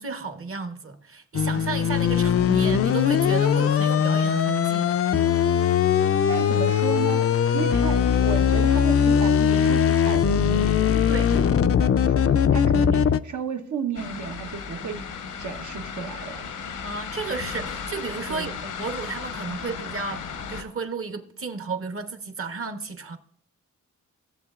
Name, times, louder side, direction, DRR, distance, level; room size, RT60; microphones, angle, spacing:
voice 1, 0.0-5.0 11.1-11.3 12.8-13.0 16.8-23.2, right 4 dB, 45° right, 1.1 m, -33 dB
sound 1, 1.3-13.2, left 8 dB, 50° left, 0.4 m, -20 dB
voice 2, 6.3-15.1 15.4-16.5 18.3-18.6, right 6 dB, 70° right, 1.1 m, -33 dB
sound 2, 14.0-20.6, left 6 dB, 80° left, 0.9 m, -35 dB
16.5 x 7.4 x 2.4 m
cardioid pair, 70°, 30 cm